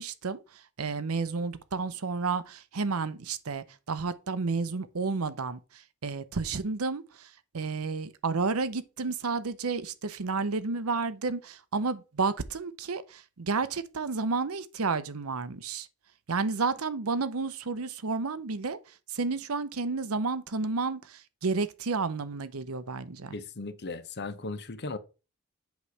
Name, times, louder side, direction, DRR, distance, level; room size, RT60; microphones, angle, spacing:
voice 1, 0.0-15.9 16.3-23.4, right 4 dB, 80° right, 0.8 m, -31 dB
voice 2, 23.3-25.0, left 3 dB, 50° left, 0.8 m, -37 dB
8.2 x 3.2 x 6.2 m
head